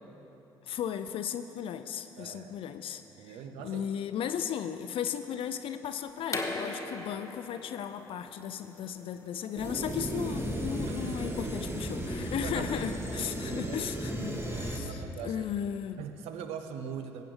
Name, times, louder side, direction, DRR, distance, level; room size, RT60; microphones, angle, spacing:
voice 1, 0.6-3.4 3.6-16.0, left 9 dB, 60° left, 9 dB, 0.4 m, -36 dB
voice 2, 2.2-2.5 3.2-3.9 10.9-11.2 12.4-12.7 13.1-13.8 14.8-15.5 16.0-17.2, right 7 dB, 70° right, 7 dB, 0.6 m, -41 dB
sound 1, 6.3-11.9, left 2 dB, 30° left, 1.2 m, -40 dB
sound 2, 9.6-14.8, right 1 dB, 25° right, 1.6 m, -35 dB
15.5 x 8.6 x 3.2 m, 3.0 s
hypercardioid pair, 45°, 11 cm